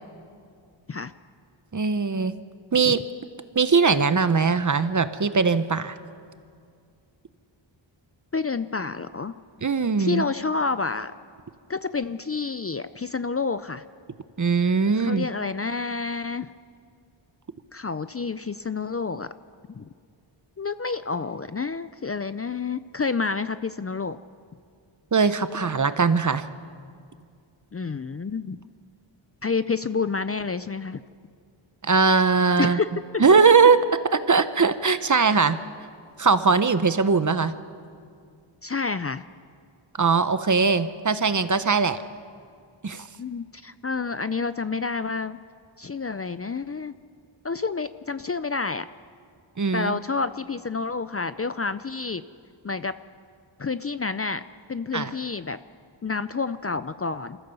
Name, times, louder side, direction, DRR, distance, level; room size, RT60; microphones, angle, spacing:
voice 1, 1.7-2.3 2.7-3.0 3.5-6.0 9.6-10.2 14.4-15.3 25.1-26.4 31.8-32.8 33.2-33.8 34.3-35.6 36.2-37.5 40.0-42.0 42.8-43.1 49.6-50.0 54.9-55.1, right 5 dB, 40° right, 12 dB, 0.9 m, -20 dB
voice 2, 8.3-9.4 10.0-11.1 11.7-13.8 15.0-16.5 17.7-19.3 19.8-19.9 20.6-24.2 27.7-28.6 29.4-31.0 32.6-32.9 33.1-33.3 38.6-39.2 43.2-45.4 45.8-46.9 47.4-48.9 49.7-52.2 52.6-53.0 53.6-54.4 54.7-55.6 56.0-57.4, left 4 dB, 30° left, 13 dB, 0.5 m, -29 dB
27.5 x 14.5 x 7.0 m, 2.3 s
wide cardioid pair, 95°, 46 cm